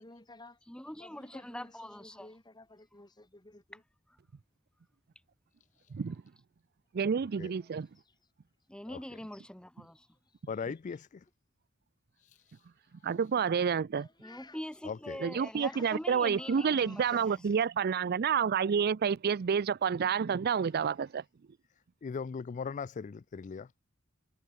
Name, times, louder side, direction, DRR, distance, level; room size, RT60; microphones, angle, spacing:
voice 1, 0.0-0.6 1.0-3.8 7.6-8.1 10.3-10.4 13.9-14.6 15.4-16.0 16.3-17.2, left 2 dB, 20° left, 4.5 m, -54 dB
voice 2, 0.7-2.3 8.7-10.1 14.2-17.4, left 1 dB, 5° left, 0.8 m, -43 dB
voice 3, 6.9-7.9 13.0-14.1 15.2-21.2, right 6 dB, 50° right, 0.4 m, -29 dB
voice 4, 10.5-11.2 14.8-15.2 22.0-23.7, left 5 dB, 40° left, 0.3 m, -38 dB
head